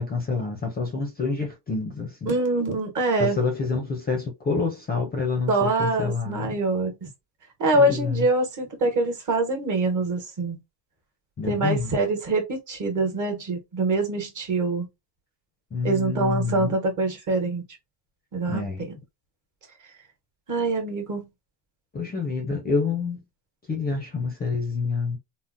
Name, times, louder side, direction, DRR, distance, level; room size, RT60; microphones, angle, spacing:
voice 1, 0.0-2.3 3.2-6.6 7.8-8.3 11.4-12.0 15.7-16.8 18.5-18.9 21.9-23.2 23.7-25.2, left 4 dB, 20° left, 0.4 m, -27 dB
voice 2, 2.3-3.4 5.5-7.1 7.6-10.6 11.5-14.9 15.8-17.6 18.3-18.9 20.5-21.2, right 2 dB, 40° right, 1.1 m, -24 dB
3.6 x 2.0 x 2.5 m
cardioid pair, 150°, 47 cm